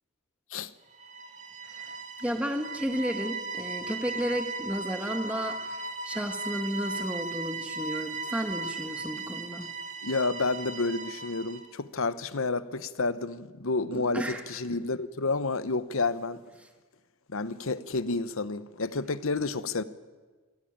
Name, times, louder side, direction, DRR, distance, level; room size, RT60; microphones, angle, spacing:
sound 1, 0.9-11.7, right 3 dB, 30° right, 1.9 m, -37 dB
voice 1, 1.7-9.7 13.9-14.4, equal, 5° right, 1.5 m, -33 dB
voice 2, 10.0-16.4 17.3-19.8, left 3 dB, 60° left, 1.0 m, -30 dB
24.0 x 16.5 x 8.8 m
head